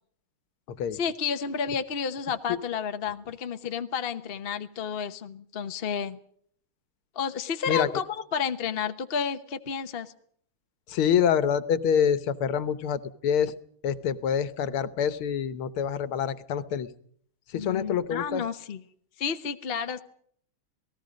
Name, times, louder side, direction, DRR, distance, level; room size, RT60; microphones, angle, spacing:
voice 1, 0.9-6.2 7.1-8.0 8.3-10.1 17.5-18.8 19.2-20.0, left 6 dB, 40° left, 8 dB, 0.9 m, -31 dB
voice 2, 10.9-13.5 13.8-16.9 17.5-18.4, left 8 dB, 85° left, 14 dB, 1.9 m, -26 dB
28.0 x 18.5 x 5.2 m, 0.64 s
omnidirectional pair, 2.3 m